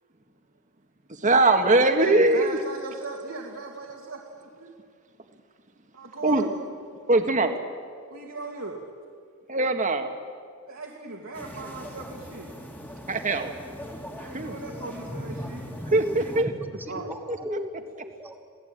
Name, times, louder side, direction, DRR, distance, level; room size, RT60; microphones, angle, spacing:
voice 1, 1.2-2.6 6.2-6.5 7.1-7.6 9.5-10.1 13.1-13.5 14.3-14.6 15.9-16.5 17.3-17.6, right 2 dB, 35° right, 6 dB, 1.7 m, -21 dB
voice 2, 2.0-4.7 5.9-6.5 8.1-8.8 10.7-12.6 14.2-15.6 16.7-17.1, right 3 dB, 65° right, -1 dB, 2.4 m, -38 dB
sound 1, 11.3-16.4, equal, 10° left, 2.2 m, -41 dB
voice 3, 15.1-18.4, equal, 10° right, 5 dB, 1.5 m, -37 dB
27.5 x 17.5 x 9.0 m, 2.2 s
head